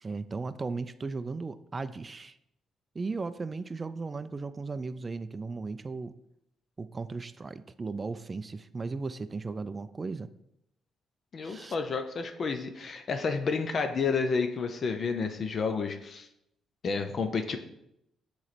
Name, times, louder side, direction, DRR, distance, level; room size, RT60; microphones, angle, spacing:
voice 1, 0.0-2.4 3.0-6.1 6.8-10.3 11.4-11.8, right 4 dB, 30° right, 12 dB, 0.3 m, -36 dB
voice 2, 11.3-16.3 16.8-17.6, left 5 dB, 50° left, 6 dB, 0.5 m, -30 dB
7.4 x 3.1 x 4.1 m, 0.79 s
cardioid pair, 90°, 0 cm